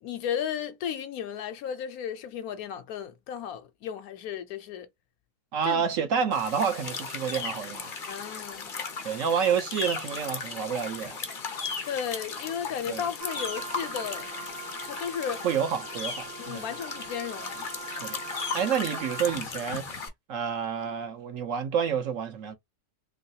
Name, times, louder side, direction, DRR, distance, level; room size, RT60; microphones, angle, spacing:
voice 1, 0.0-4.9 5.6-5.8 8.1-8.7 11.8-14.3 14.8-15.5 16.4-17.7, left 8 dB, 70° left, 1.1 m, -34 dB
voice 2, 5.5-7.9 9.0-11.2 12.9-13.0 15.4-16.7 17.9-18.2 18.5-20.0 20.3-22.6, right 7 dB, 65° right, 1.0 m, -29 dB
sound 1, 6.3-20.1, left 5 dB, 50° left, 0.6 m, -36 dB
Wind instrument woodwind instrument, 13.2-19.5, right 5 dB, 85° right, 1.4 m, -42 dB
3.1 x 3.1 x 2.7 m
omnidirectional pair, 1.7 m